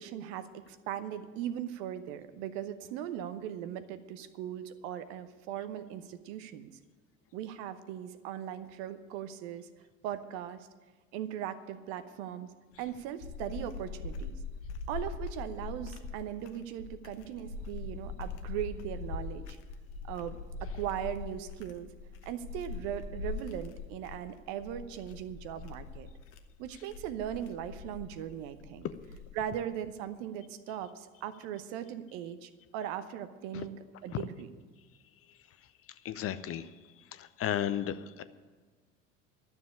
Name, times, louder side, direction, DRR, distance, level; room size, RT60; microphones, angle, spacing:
voice 1, 0.0-6.7 7.3-9.7 10.0-10.7 11.1-12.5 12.8-14.4 14.9-19.6 20.0-21.9 22.2-26.1 26.6-28.9 29.4-34.5, right 10 dB, 55° right, 12 dB, 0.9 m, -39 dB
sound 1, 12.7-29.6, left 4 dB, 60° left, 1.1 m, -42 dB
voice 2, 36.0-38.2, left 11 dB, 35° left, 12 dB, 0.7 m, -34 dB
12.5 x 7.2 x 9.8 m, 1.4 s
figure-of-eight pair, 65°, 39 cm